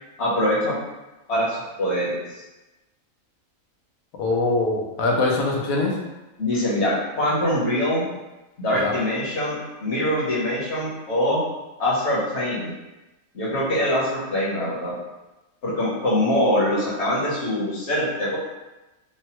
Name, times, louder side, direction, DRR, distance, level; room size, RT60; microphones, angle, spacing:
voice 1, 0.2-0.8 1.3-2.2 6.4-8.1 8.6-11.4 11.8-12.7 13.3-14.9 15.6-18.4, left 1 dB, 60° left, -7 dB, 1.2 m, -23 dB
voice 2, 4.2-6.0 8.7-9.0, left 3 dB, 80° left, -1 dB, 1.0 m, -23 dB
3.2 x 2.1 x 2.9 m, 1.0 s
omnidirectional pair, 1.4 m